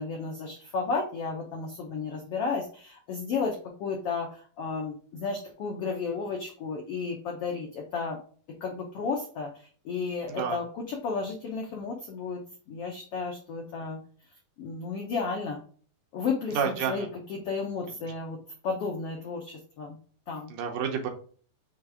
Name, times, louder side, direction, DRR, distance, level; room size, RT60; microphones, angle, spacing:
voice 1, 0.0-8.2 8.5-9.5 9.8-12.4 12.7-14.0 14.6-15.6 16.1-20.0 20.3-20.5, left 4 dB, 80° left, 0 dB, 1.3 m, -33 dB
voice 2, 10.3-10.6 16.5-17.1 20.5-21.1, right 7 dB, 75° right, 3 dB, 2.4 m, -29 dB
6.5 x 3.2 x 5.0 m, 0.43 s
omnidirectional pair, 4.1 m